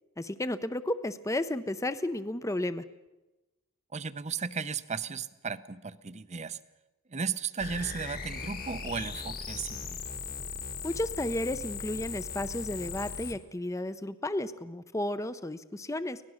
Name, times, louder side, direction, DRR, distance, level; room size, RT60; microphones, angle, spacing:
voice 1, 0.2-2.8 10.8-16.2, left 1 dB, 15° left, 13 dB, 0.6 m, -33 dB
voice 2, 3.9-6.6 7.1-10.1, right 5 dB, 30° right, 14 dB, 0.6 m, -35 dB
sound 1, 7.6-13.4, left 5 dB, 45° left, 1.6 m, -38 dB
24.5 x 18.0 x 6.3 m, 1.1 s
head